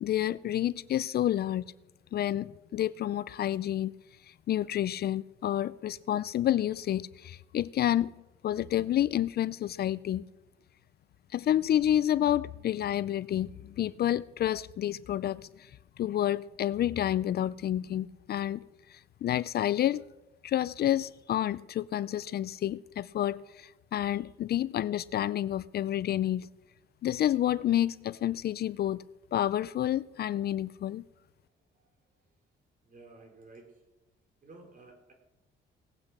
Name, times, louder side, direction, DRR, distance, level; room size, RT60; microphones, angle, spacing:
voice 1, 0.0-1.7 2.1-3.9 4.5-8.1 8.4-10.3 11.3-15.7 16.0-18.6 18.9-20.1 20.4-26.5 27.0-29.0 29.3-31.0, left 12 dB, 55° left, 0.4 m, -29 dB
voice 2, 31.7-32.2 32.8-33.8 34.4-35.1, right 3 dB, 45° right, 3.5 m, -54 dB
18.0 x 8.6 x 6.1 m
cardioid pair, 90°, 20 cm